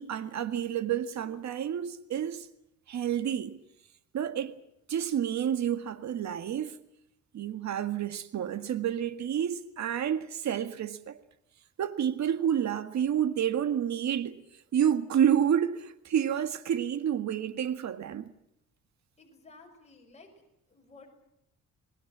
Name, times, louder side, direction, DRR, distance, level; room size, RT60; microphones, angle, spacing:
voice 1, 0.0-2.5 2.9-3.6 4.1-4.6 4.9-6.8 7.3-11.2 11.8-14.4 14.7-18.3, right 9 dB, 65° right, 1.8 m, -29 dB
voice 2, 19.2-21.1, left 3 dB, 20° left, 6.2 m, -55 dB
25.0 x 20.0 x 7.5 m
cardioid pair, 90°, 30 cm